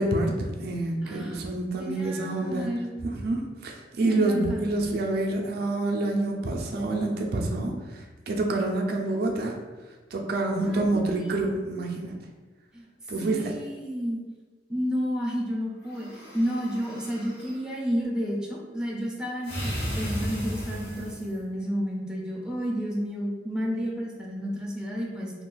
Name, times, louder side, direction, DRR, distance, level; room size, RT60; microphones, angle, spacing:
voice 1, 0.0-2.7 3.0-9.6 10.1-12.2 13.1-13.5, right 2 dB, 60° right, 1 dB, 0.4 m, -27 dB
voice 2, 1.0-2.9 4.0-4.6 10.6-11.4 12.7-12.9 13.2-14.2 14.7-25.3, equal, 5° right, -4 dB, 0.5 m, -31 dB
sound 1, 15.8-17.6 19.4-21.4, equal, 80° left, 1.3 m, -34 dB
2.5 x 2.3 x 3.8 m, 1.3 s
head